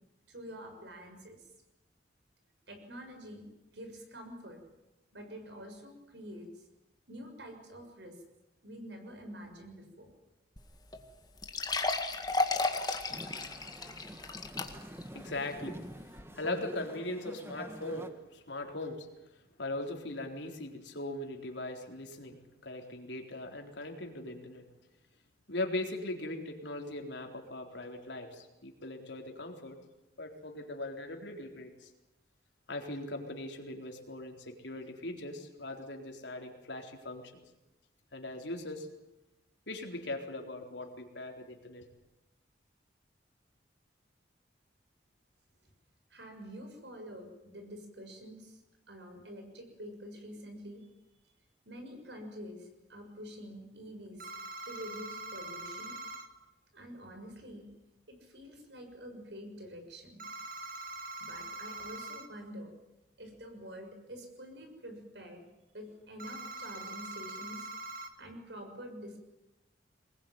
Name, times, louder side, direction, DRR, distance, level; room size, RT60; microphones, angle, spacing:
voice 1, 0.3-1.4 2.7-4.6 5.1-6.6 7.1-8.2 8.6-10.1 46.1-48.6 48.9-50.9 51.6-54.3 54.6-55.9 56.7-57.7 58.1-60.2 61.2-62.7 63.2-65.4 65.7-67.7 68.2-69.3, equal, 75° right, 5 dB, 6.6 m, -47 dB
sound 1, 10.6-10.7 10.9-11.0 11.4-15.0 15.5-15.6 16.2-16.3, left 3 dB, 20° left, 1.9 m, -33 dB
sound 2, 13.1-18.1, equal, 15° right, 1.5 m, -46 dB
voice 2, 14.8-24.7 25.5-29.8 30.2-31.9 32.7-37.4 38.1-38.9 39.7-41.8, left 2 dB, 80° left, 3 dB, 4.0 m, -40 dB
sound 3, 54.2-56.3 60.2-62.3 66.2-68.1, right 2 dB, 50° right, 2.1 m, -43 dB
24.0 x 20.5 x 9.6 m, 0.96 s
head